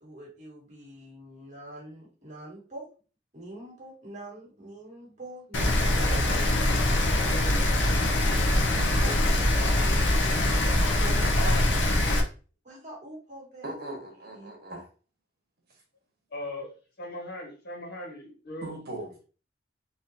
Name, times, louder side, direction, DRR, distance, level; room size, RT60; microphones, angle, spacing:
voice 1, 0.0-2.9 3.3-6.0 11.0-11.6 12.6-13.6 14.3-14.5, right 1 dB, 40° right, 1.8 m, -43 dB
Rain, 5.5-12.2, left 1 dB, 85° left, 0.8 m, -23 dB
voice 2, 6.0-6.8 8.7-9.3 13.6-14.9 18.6-19.2, right 2 dB, 60° right, 1.5 m, -39 dB
voice 3, 16.3-16.7 17.0-18.7, left 1 dB, 60° left, 1.5 m, -38 dB
4.1 x 3.0 x 2.8 m
head